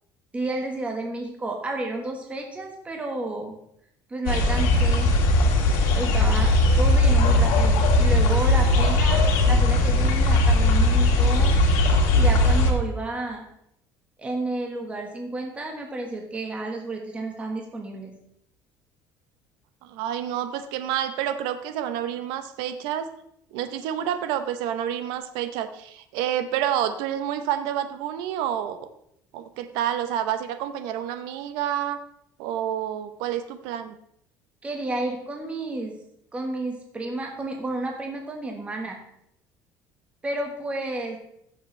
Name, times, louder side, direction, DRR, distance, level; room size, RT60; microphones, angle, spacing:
voice 1, 0.3-3.5 4.1-5.1 5.9-6.5 6.8-9.2 9.4-11.6 12.1-13.4 14.2-18.1 34.6-36.0 36.3-39.0 40.2-41.2, right 2 dB, 15° right, 2 dB, 1.3 m, -31 dB
sound 1, 4.3-12.7, left 1 dB, 85° left, 1.9 m, -19 dB
voice 2, 19.8-23.1 23.5-28.8 29.3-32.0 32.4-33.9, right 10 dB, 85° right, 10 dB, 0.7 m, -28 dB
15.5 x 7.1 x 3.2 m, 0.76 s
cardioid pair, 145°, 8 cm